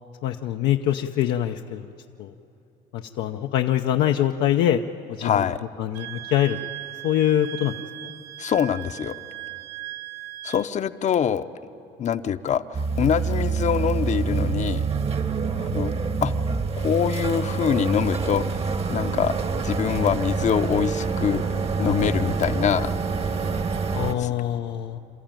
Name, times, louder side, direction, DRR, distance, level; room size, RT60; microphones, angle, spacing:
voice 1, 0.2-1.8 2.2-2.3 2.9-4.8 5.1-5.4 5.8-6.6 7.0-7.8 8.0-8.1 23.9-25.0, left 11 dB, 85° left, 4 dB, 0.7 m, -24 dB
voice 2, 5.2-5.6 8.4-9.1 10.4-11.4 12.0-14.8 15.6-15.9 16.2-16.3 16.8-19.3 19.6-21.4 21.8-22.9 24.2-24.3, left 8 dB, 45° left, 12 dB, 0.7 m, -24 dB
Wind instrument woodwind instrument, 5.9-10.7, right 17 dB, 85° right, 0.9 m, -38 dB
sound 1, 12.7-24.1, right 5 dB, 35° right, 1.2 m, -26 dB
28.5 x 13.5 x 9.0 m, 2.9 s
cardioid pair, 110°, 17 cm